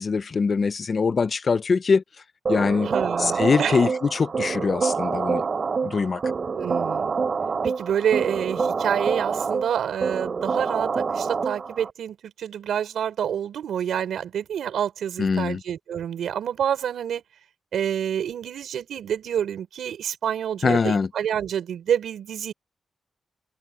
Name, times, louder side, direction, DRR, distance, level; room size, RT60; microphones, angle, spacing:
voice 1, 0.0-2.0 2.5-2.9 3.2-5.4 5.8-6.2 15.2-15.6 20.6-21.1, left 5 dB, 45° left, 0.9 m, -23 dB
sound 1, 2.5-11.9, right 5 dB, 50° right, 3.6 m, -26 dB
voice 2, 2.8-3.8 6.5-7.1 7.6-17.2 17.7-22.5, right 9 dB, 90° right, 5.2 m, -28 dB
cardioid pair, 100°, 0 cm